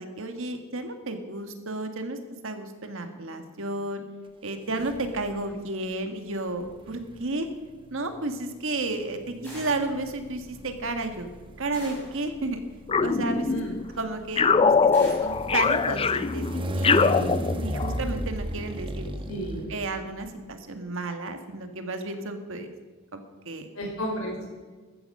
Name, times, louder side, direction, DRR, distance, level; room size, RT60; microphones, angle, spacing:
voice 1, 0.0-2.2 2.4-4.0 4.4-7.5 7.9-11.3 11.6-12.6 13.0-13.5 13.9-19.1 19.7-22.7 23.1-23.7, right 2 dB, 65° right, 6 dB, 1.7 m, -32 dB
sound 1, 4.8-5.5 6.6-20.3, right 1 dB, 25° right, 1.1 m, -36 dB
sound 2, 9.4-10.0 11.7-12.2 14.9-15.4, left 1 dB, 10° left, 6.2 m, -43 dB
sound 3, 12.9-13.9 14.4-18.0, left 5 dB, 25° left, 0.4 m, -23 dB
voice 2, 19.2-19.7 23.7-24.5, equal, 80° left, -1 dB, 5.2 m, -32 dB
14.0 x 14.0 x 5.5 m, 1.4 s
head